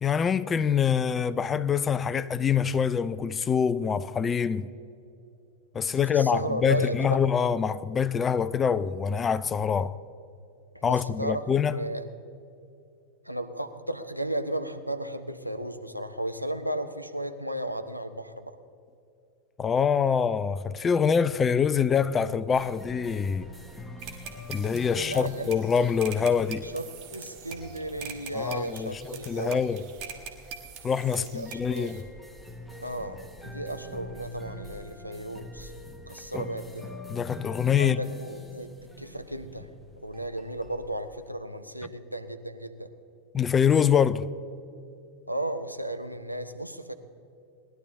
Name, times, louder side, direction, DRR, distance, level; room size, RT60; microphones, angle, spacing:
voice 1, 0.0-4.7 5.7-10.0 10.8-11.8 19.6-23.5 24.5-26.7 28.3-29.8 30.8-32.1 36.3-36.5 37.1-38.0 43.3-44.3, left 7 dB, 20° left, 0.4 m, -25 dB
voice 2, 5.8-7.2 10.9-11.4 11.7-12.0 13.3-18.5 24.9-25.5 26.6-29.6 31.1-31.9 32.8-35.7 36.1-36.9 37.8-39.7 40.0-42.9 45.3-46.9, right 1 dB, 90° right, 0.7 m, -34 dB
sound 1, 22.5-41.3, equal, 5° left, 1.0 m, -45 dB
sound 2, 24.0-32.0, right 7 dB, 40° right, 1.4 m, -44 dB
19.0 x 11.5 x 3.7 m
figure-of-eight pair, 90°, 0 cm